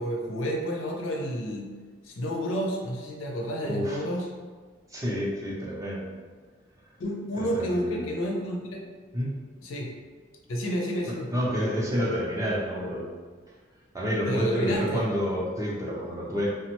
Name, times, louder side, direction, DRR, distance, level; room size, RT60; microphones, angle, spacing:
voice 1, 0.0-1.7 2.0-4.3 7.0-8.9 9.6-9.9 10.5-11.3 14.3-15.1, equal, 75° left, 1 dB, 0.5 m, -30 dB
voice 2, 3.6-4.0 4.9-6.1 7.3-8.1 9.1-9.4 11.3-13.1 13.9-16.5, equal, 15° right, -4 dB, 0.5 m, -29 dB
3.2 x 2.1 x 2.9 m, 1.5 s
head